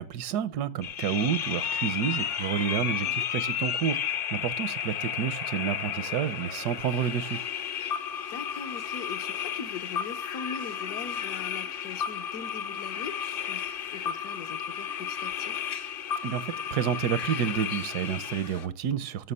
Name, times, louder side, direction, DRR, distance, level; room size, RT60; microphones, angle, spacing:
voice 1, 0.0-7.4 16.2-19.3, right 9 dB, 80° right, 1.2 m, -30 dB
sound 1, 0.8-18.7, left 8 dB, 55° left, 0.6 m, -33 dB
voice 2, 2.8-3.3 8.3-13.6 13.9-15.5, left 7 dB, 70° left, 1.3 m, -41 dB
12.5 x 6.4 x 5.5 m
omnidirectional pair, 1.7 m